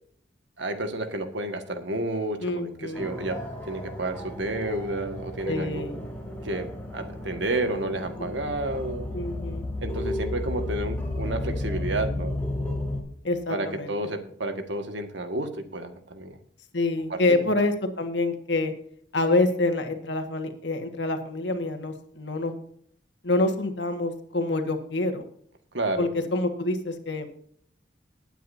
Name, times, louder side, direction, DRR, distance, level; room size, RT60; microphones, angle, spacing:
voice 1, 0.6-3.4 3.7-5.8 6.4-9.1 9.8-12.4 13.5-16.4 17.1-17.4 25.7-26.1, right 2 dB, 85° right, 6 dB, 1.7 m, -31 dB
voice 2, 2.4-3.1 5.5-6.0 8.2-8.3 9.1-9.7 13.2-13.9 16.7-18.7 19.1-22.6 23.2-25.3 26.0-27.3, left 2 dB, 75° left, 6 dB, 1.7 m, -27 dB
sound 1, 2.9-13.0, left 1 dB, 10° left, 3.0 m, -33 dB
20.5 x 9.1 x 2.7 m, 0.63 s
head